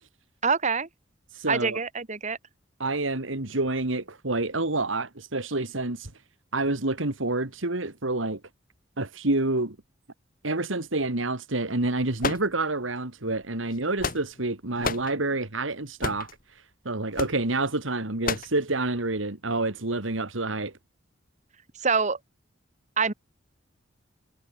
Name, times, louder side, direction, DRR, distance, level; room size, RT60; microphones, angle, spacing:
voice 1, 0.4-0.9 1.5-2.4 21.8-22.2 23.0-23.1, right 5 dB, 40° right, 1.7 m, -25 dB
voice 2, 1.3-1.8 2.8-6.1 6.5-8.4 9.0-9.8 10.4-16.3 16.8-20.7, right 2 dB, 80° right, 2.5 m, -28 dB
sound 1, 12.2-13.0 13.7-14.5 14.8-15.1 16.0-16.3 17.2-17.4 18.2-18.6, left 4 dB, 45° left, 2.5 m, -30 dB
head